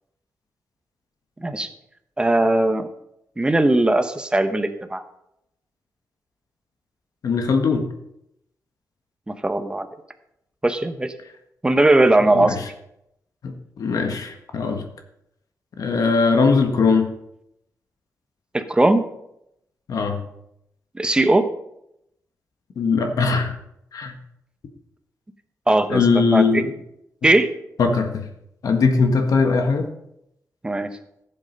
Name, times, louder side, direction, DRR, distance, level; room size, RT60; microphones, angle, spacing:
voice 1, 2.2-2.9 3.4-5.0 9.3-9.9 10.6-11.1 11.6-12.6 18.5-19.0 20.9-21.5 25.7-26.6 27.2-27.5 30.6-30.9, right 2 dB, 15° right, 8 dB, 1.0 m, -19 dB
voice 2, 7.2-7.8 12.3-12.6 13.4-14.8 15.8-17.1 19.9-20.2 22.8-23.5 23.9-24.1 25.9-26.7 27.8-28.2 28.6-29.9, left 4 dB, 70° left, 5 dB, 1.6 m, -20 dB
15.0 x 7.7 x 5.3 m, 0.80 s
wide cardioid pair, 130°, 6 cm